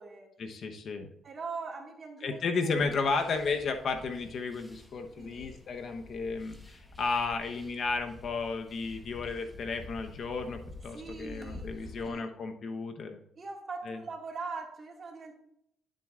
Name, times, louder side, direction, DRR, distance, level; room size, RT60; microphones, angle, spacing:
voice 1, 0.4-1.1 2.2-13.2 13.9-14.0, left 4 dB, 55° left, 6 dB, 1.0 m, -33 dB
voice 2, 1.2-2.8 5.2-5.5 10.9-11.7 12.0-12.2 13.4-15.3, right 4 dB, 40° right, 0 dB, 2.1 m, -41 dB
sound 1, 2.7-12.1, left 2 dB, 10° left, 1.3 m, -49 dB
11.0 x 7.6 x 2.5 m, 0.75 s
cardioid pair, 90°, 0 cm